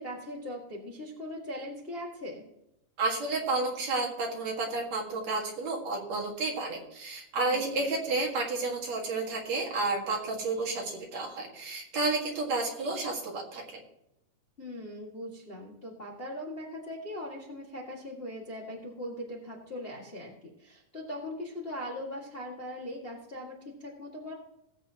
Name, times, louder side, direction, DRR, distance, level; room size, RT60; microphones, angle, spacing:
voice 1, 0.0-2.4 7.5-7.9 14.6-24.3, left 1 dB, 25° left, -3 dB, 1.3 m, -40 dB
voice 2, 3.0-13.8, right 3 dB, 55° right, 0 dB, 2.8 m, -31 dB
19.0 x 8.2 x 2.9 m, 0.82 s
omnidirectional pair, 4.0 m